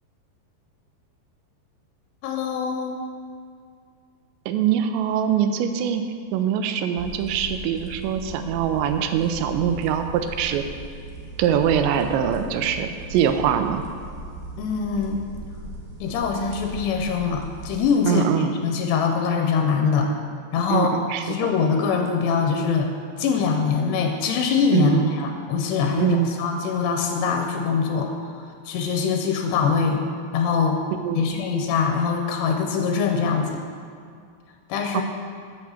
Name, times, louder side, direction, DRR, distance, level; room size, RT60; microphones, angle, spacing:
voice 1, 2.2-3.0 14.6-15.2 16.0-20.1 20.5-20.9 21.2-22.9 23.2-30.0 30.3-30.8 31.2-33.6 34.7-35.0, left 5 dB, 85° left, 3 dB, 2.8 m, -23 dB
voice 2, 4.5-6.0 6.3-10.7 11.4-13.8 18.1-18.5 20.7-21.5 24.7-25.1 26.0-26.3 31.0-31.3 34.9-35.0, right 9 dB, 85° right, 8 dB, 2.8 m, -23 dB
sound 1, 6.9-17.9, right 2 dB, 65° right, 2.3 m, -38 dB
8.1 x 6.1 x 7.1 m, 2.2 s
omnidirectional pair, 5.1 m